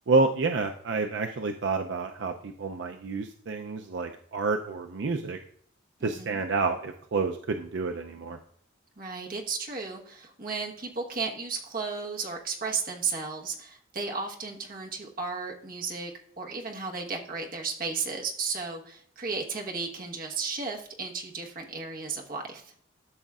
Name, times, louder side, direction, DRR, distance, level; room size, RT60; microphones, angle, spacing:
voice 1, 0.1-5.4 6.0-8.4, right 3 dB, 70° right, 5 dB, 0.5 m, -29 dB
voice 2, 6.0-6.4 9.0-16.1 16.4-22.7, right 4 dB, 45° right, 0 dB, 1.2 m, -34 dB
12.5 x 6.4 x 2.4 m, 0.63 s
head